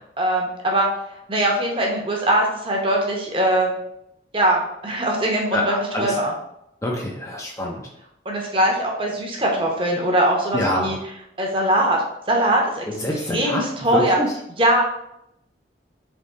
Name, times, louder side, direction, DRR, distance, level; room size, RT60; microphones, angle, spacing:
voice 1, 0.2-0.9 1.3-3.7 4.3-6.3 8.2-11.0 11.4-12.8 13.3-14.2 14.6-14.8, right 1 dB, 30° right, 0 dB, 0.8 m, -21 dB
voice 2, 5.5-6.2 6.8-7.9 10.5-10.9 12.9-14.3, left 1 dB, 15° left, -2 dB, 0.4 m, -26 dB
3.6 x 3.0 x 3.9 m, 0.80 s
head